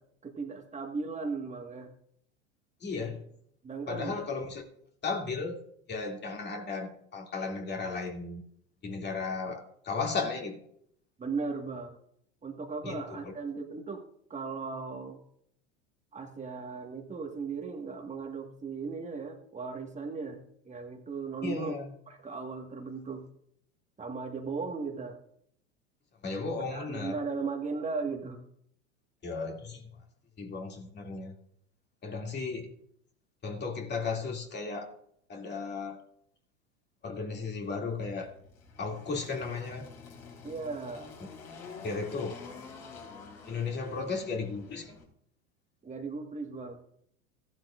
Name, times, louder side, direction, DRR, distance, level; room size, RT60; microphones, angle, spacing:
voice 1, 0.0-1.9 3.6-4.2 11.2-12.0 12.4-14.1 14.3-15.2 16.1-21.8 22.1-23.2 24.0-25.2 26.7-28.4 40.4-41.1 45.8-46.8, right 4 dB, 20° right, 2 dB, 1.6 m, -37 dB
voice 2, 2.8-3.2 3.9-4.6 5.0-5.6 5.9-8.4 8.8-10.6 12.8-13.3 21.4-21.9 26.2-27.2 29.2-30.0 30.4-31.3 32.0-32.7 33.4-35.0 35.3-36.0 37.0-38.3 38.8-39.9 41.8-42.4 43.5-45.0, left 4 dB, 30° left, 2 dB, 2.5 m, -35 dB
Engine, 37.6-45.0, left 4 dB, 45° left, 4.8 m, -48 dB
15.5 x 12.0 x 2.5 m, 0.70 s
hypercardioid pair, 90°, 35 cm